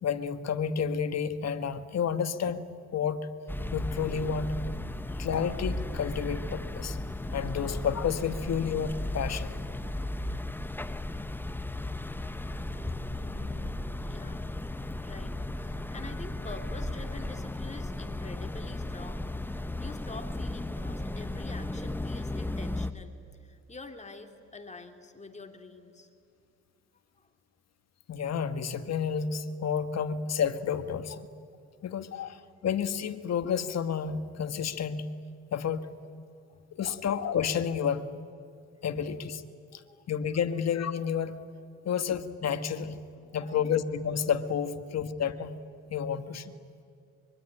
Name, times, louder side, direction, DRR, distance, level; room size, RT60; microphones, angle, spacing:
voice 1, 0.0-2.6 2.9-3.3 3.7-4.6 5.1-7.0 7.3-9.6 28.1-31.3 31.8-35.1 35.5-36.0 36.7-38.1 38.8-39.4 39.7-39.8 40.1-41.4 41.9-43.0 43.3-45.6 45.9-46.5, left 7 dB, 60° left, 10 dB, 1.7 m, -30 dB
sound 1, 3.5-22.9, left 1 dB, 5° left, 1.1 m, -35 dB
voice 2, 13.0-14.4 14.8-23.1 23.4-26.1 27.2-27.3 31.9-32.0 36.5-37.0 39.7-40.0 41.8-41.9 43.2-43.7, left 3 dB, 25° left, 5 dB, 2.8 m, -47 dB
24.5 x 23.5 x 10.0 m, 2.4 s
cardioid pair, 90°, 30 cm